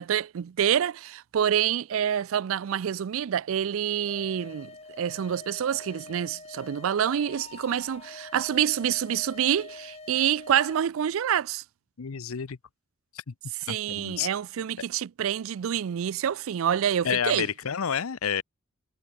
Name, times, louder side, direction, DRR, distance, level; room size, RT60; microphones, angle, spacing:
voice 1, 0.0-4.7 5.0-11.6 13.7-17.5, right 9 dB, 75° right, 0.4 m, -27 dB
sound 1, 4.1-10.7, left 3 dB, 30° left, 5.9 m, -45 dB
voice 2, 12.0-12.6 13.3-13.4 13.7-14.3 17.0-18.4, left 7 dB, 90° left, 0.7 m, -29 dB
head